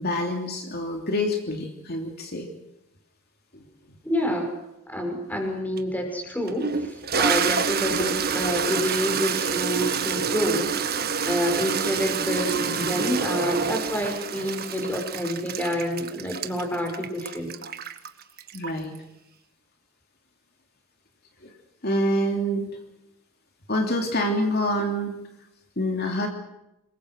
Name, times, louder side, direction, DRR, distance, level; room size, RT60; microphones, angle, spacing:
voice 1, 0.0-2.5 3.5-4.0 7.9-8.0 18.5-18.9 21.4-21.5 21.8-22.7 23.7-25.2 25.8-26.3, equal, 45° left, 3 dB, 3.1 m, -27 dB
voice 2, 4.0-4.5 4.9-10.9 11.2-17.5, equal, 5° left, 3 dB, 6.2 m, -28 dB
Toilet flush, 5.8-5.9 6.5-19.0, right 6 dB, 45° right, 1.6 m, -27 dB
28.0 x 22.5 x 6.4 m, 0.89 s
head